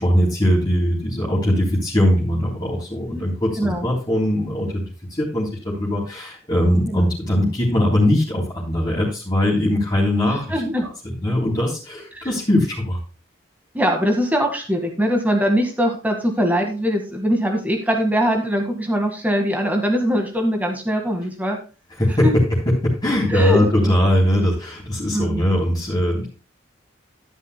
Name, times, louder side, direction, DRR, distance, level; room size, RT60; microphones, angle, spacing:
voice 1, 0.0-4.8 5.1-10.6 11.0-13.0 22.0-26.3, left 1 dB, 20° left, -4 dB, 3.5 m, -20 dB
voice 2, 3.6-3.9 6.9-7.1 10.3-10.9 13.7-21.6 22.2-22.3 23.3-24.0 25.1-25.4, equal, 10° right, 3 dB, 1.7 m, -22 dB
13.0 x 10.0 x 2.2 m, 0.35 s
head